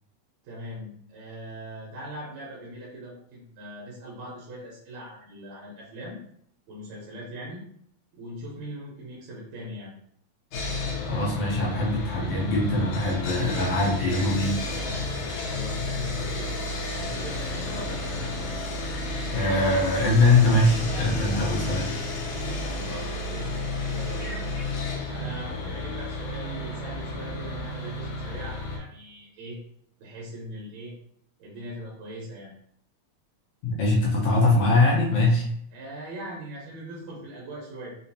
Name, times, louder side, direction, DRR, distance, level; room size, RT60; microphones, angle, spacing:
voice 1, 0.4-6.2 6.7-7.6 8.1-9.9 15.3-16.5 16.9-18.3 22.5-23.5 23.9-24.4 25.1-29.6 30.0-30.9 31.4-32.5 35.7-38.0, right 1 dB, 75° right, -5 dB, 2.0 m, -40 dB
Sawing, 10.5-28.8, left 2 dB, 85° left, 2.2 m, -32 dB
voice 2, 11.1-14.6 19.3-21.9 33.6-35.5, left 2 dB, 70° left, -3 dB, 1.6 m, -22 dB
Telephone, 14.0-14.5 19.3-22.2 24.1-24.6, left 1 dB, 30° left, 0.6 m, -43 dB
5.2 x 2.0 x 2.7 m, 0.67 s
omnidirectional pair, 3.3 m